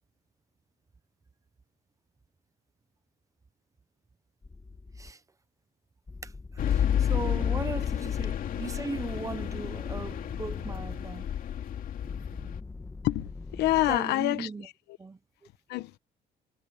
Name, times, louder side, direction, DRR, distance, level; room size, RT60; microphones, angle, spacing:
sound 1, 4.4-5.1 6.1-8.2 9.1-11.1 12.0-14.0, left 3 dB, 15° left, 1.6 m, -43 dB
sound 2, 6.6-12.6, left 9 dB, 55° left, 2.8 m, -30 dB
voice 1, 6.7-11.3 13.9-14.7 15.0-15.2, right 4 dB, 20° right, 1.1 m, -38 dB
voice 2, 13.0-14.5 15.7-16.0, left 16 dB, 85° left, 1.1 m, -27 dB
cardioid pair, 110°, 17 cm